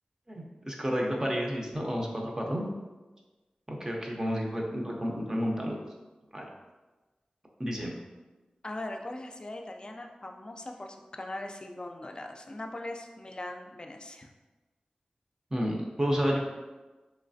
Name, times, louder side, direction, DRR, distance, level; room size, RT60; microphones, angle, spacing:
voice 1, 0.3-2.6 3.7-5.8 6.3-6.5 7.6-7.9 15.5-16.4, equal, 25° right, -1 dB, 0.5 m, -31 dB
voice 2, 8.6-14.3, left 1 dB, 35° left, 4 dB, 0.3 m, -40 dB
3.1 x 3.1 x 2.6 m, 1.2 s
wide cardioid pair, 70°, 3 cm